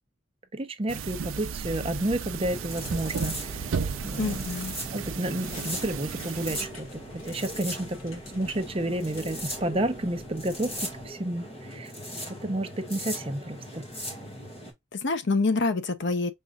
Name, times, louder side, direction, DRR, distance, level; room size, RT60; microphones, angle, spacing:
voice 1, 0.5-3.7 4.0-4.4 4.9-10.7 11.0-11.9 12.4-13.8, right 1 dB, 25° right, 0.6 m, -31 dB
sound 1, 0.9-6.7, right 6 dB, 70° right, 0.5 m, -34 dB
sound 2, 2.4-14.7, equal, 30° left, 1.7 m, -39 dB
voice 2, 4.2-4.8 14.9-16.3, left 3 dB, 55° left, 0.6 m, -26 dB
sound 3, 5.2-11.1, left 1 dB, 70° left, 1.4 m, -50 dB
5.5 x 3.6 x 2.3 m
head